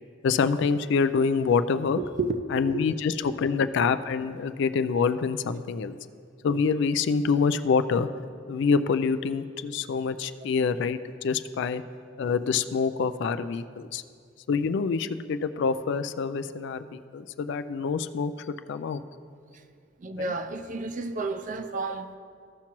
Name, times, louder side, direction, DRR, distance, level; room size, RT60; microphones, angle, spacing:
voice 1, 0.2-2.0 2.5-5.9 6.4-8.1 8.5-11.8 12.2-14.0 14.5-19.0 20.2-20.3, left 5 dB, 65° left, 0.3 m, -26 dB
voice 2, 2.0-2.4 20.0-22.2, right 3 dB, 40° right, 0.5 m, -31 dB
15.0 x 5.8 x 3.0 m
head